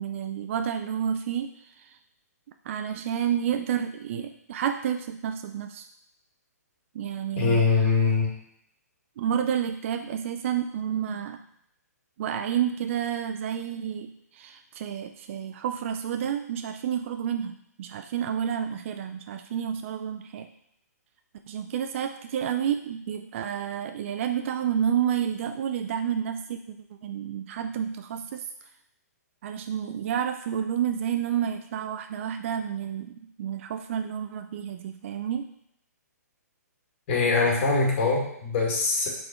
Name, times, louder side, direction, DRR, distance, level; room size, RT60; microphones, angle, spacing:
voice 1, 0.0-1.9 2.7-5.9 6.9-7.6 9.2-11.4 12.2-20.5 21.5-26.8 27.0-28.5 29.4-35.5, right 9 dB, 45° right, 7 dB, 0.4 m, -30 dB
voice 2, 7.4-8.3 37.1-39.1, left 4 dB, 40° left, -2 dB, 2.1 m, -23 dB
4.7 x 4.4 x 4.4 m, 0.73 s
hypercardioid pair, 140°, 9 cm